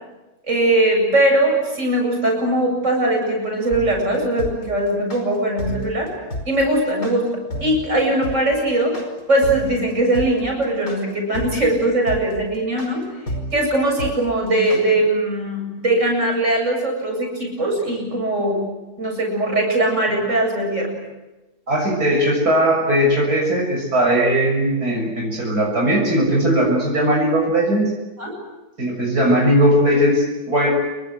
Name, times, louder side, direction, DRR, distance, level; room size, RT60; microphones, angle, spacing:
voice 1, 0.5-6.1 6.5-7.3 7.6-9.0 9.3-13.1 13.5-18.6 19.0-20.9 28.2-28.3, right 1 dB, 50° right, 1 dB, 8.4 m, -20 dB
sound 1, 3.7-14.8, equal, 85° left, 5.9 m, -30 dB
voice 2, 21.7-27.9 28.8-30.7, equal, 75° right, -1 dB, 7.4 m, -18 dB
29.0 x 24.0 x 8.1 m, 1.1 s
omnidirectional pair, 1.6 m